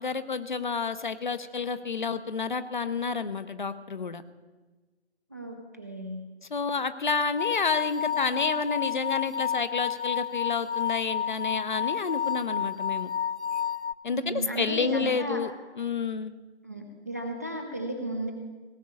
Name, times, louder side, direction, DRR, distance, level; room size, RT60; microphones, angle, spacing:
voice 1, 0.0-4.2 6.5-13.1 14.0-15.5 15.8-16.4, left 5 dB, 45° left, 12 dB, 0.7 m, -30 dB
voice 2, 5.3-6.2 14.1-15.4 16.6-18.3, right 1 dB, 15° right, 3 dB, 0.5 m, -34 dB
sound 1, 7.4-13.9, left 8 dB, 85° left, 0.5 m, -30 dB
17.5 x 6.1 x 8.6 m, 1.3 s
figure-of-eight pair, 150°, 34 cm